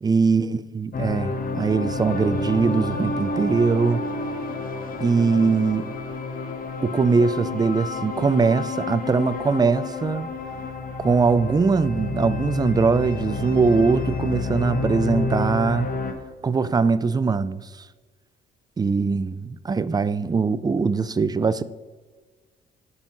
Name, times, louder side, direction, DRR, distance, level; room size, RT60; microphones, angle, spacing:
voice 1, 0.0-4.0 5.0-5.9 6.8-10.3 11.0-15.9 16.4-17.9 18.8-21.6, right 4 dB, 20° right, 0.4 m, -21 dB
sound 1, 0.9-16.1, left 3 dB, 45° left, 1.2 m, -29 dB
9.6 x 5.3 x 6.0 m
cardioid pair, 90°, 20 cm